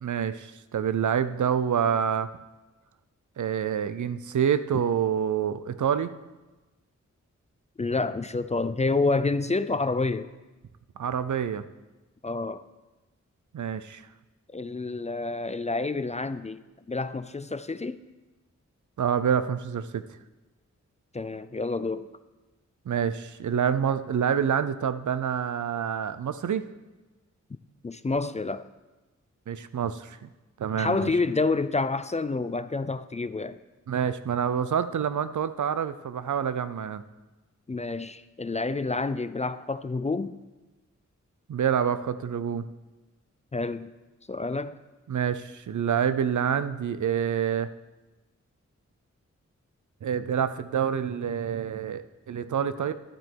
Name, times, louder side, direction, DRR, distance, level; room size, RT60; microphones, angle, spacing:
voice 1, 0.0-2.3 3.4-6.1 11.0-11.6 13.5-14.0 19.0-20.0 22.9-26.7 29.5-30.3 30.6-31.1 33.9-37.0 41.5-42.7 45.1-47.7 50.0-52.9, right 8 dB, 80° right, 0.6 m, -27 dB
voice 2, 7.8-10.3 12.2-12.6 14.5-16.6 16.9-18.0 21.1-22.1 27.8-28.7 30.8-33.6 37.7-40.4 43.5-43.9 44.3-44.8, left 3 dB, 25° left, 0.4 m, -28 dB
11.5 x 9.1 x 4.6 m
wide cardioid pair, 95°, 30 cm